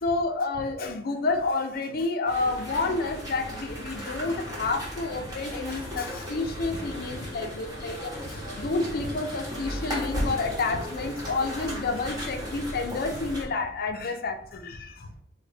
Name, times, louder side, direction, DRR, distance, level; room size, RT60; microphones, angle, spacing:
voice 1, 0.0-15.1, left 3 dB, 50° left, 5 dB, 0.5 m, -29 dB
sound 1, 2.3-13.5, equal, 20° right, 1.0 m, -36 dB
3.9 x 2.1 x 3.2 m, 0.63 s
head